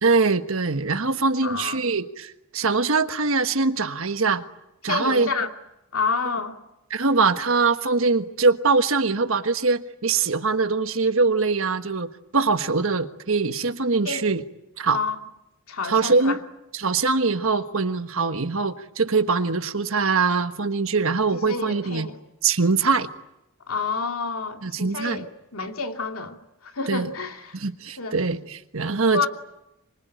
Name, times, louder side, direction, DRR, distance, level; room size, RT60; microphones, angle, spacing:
voice 1, 0.0-4.4 4.8-5.3 6.9-14.4 14.8-15.0 15.8-16.4 16.7-22.1 22.4-23.1 24.6-25.2 26.9-27.1 27.5-29.3, right 4 dB, 70° right, 9 dB, 1.4 m, -23 dB
voice 2, 1.4-1.8 4.8-5.5 5.9-6.6 14.0-14.3 14.9-15.2 15.7-16.4 21.3-22.2 23.7-25.3 25.5-26.4 26.6-27.6 28.0-28.2 29.1-29.3, left 4 dB, 80° left, 4 dB, 2.5 m, -29 dB
25.5 x 24.0 x 9.3 m, 0.89 s
head